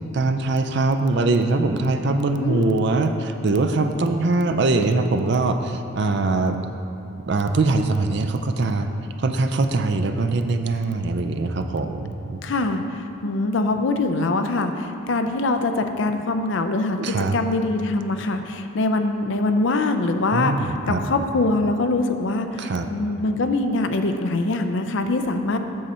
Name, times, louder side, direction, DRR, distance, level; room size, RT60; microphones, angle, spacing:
voice 1, 0.1-6.6 7.3-8.9 9.2-12.4 17.0-17.4 20.3-21.0 22.6-22.9, right 3 dB, 55° right, 7 dB, 0.4 m, -22 dB
voice 2, 2.4-2.9 12.4-25.6, left 2 dB, 60° left, 7 dB, 0.5 m, -23 dB
7.6 x 6.6 x 4.3 m, 2.8 s
head